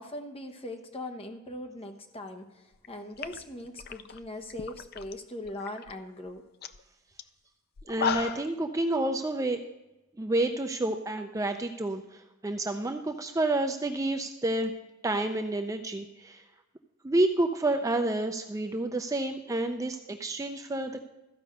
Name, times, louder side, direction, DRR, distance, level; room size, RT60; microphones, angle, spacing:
voice 1, 0.0-6.4, left 1 dB, 30° left, 5 dB, 1.0 m, -40 dB
sound 1, 2.7-2.9 3.2-5.1 5.4-5.9 6.3-6.4 6.6-6.8 7.2-7.3 7.8-8.5, left 7 dB, 50° left, 0.4 m, -34 dB
voice 2, 7.9-9.6 10.2-14.7 15.0-16.4 17.0-21.1, right 2 dB, 15° right, 5 dB, 0.4 m, -29 dB
14.0 x 5.2 x 6.6 m, 1.0 s
head